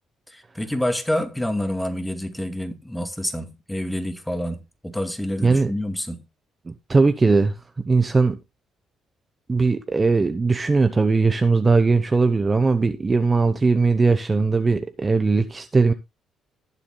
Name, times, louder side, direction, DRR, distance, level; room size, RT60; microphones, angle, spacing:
voice 1, 0.3-6.2, left 1 dB, 5° left, 2.1 m, -28 dB
voice 2, 6.7-7.5 7.9-8.4 9.5-15.9, right 4 dB, 20° right, 1.0 m, -19 dB
19.5 x 7.2 x 2.3 m
cardioid pair, 110°, 0 cm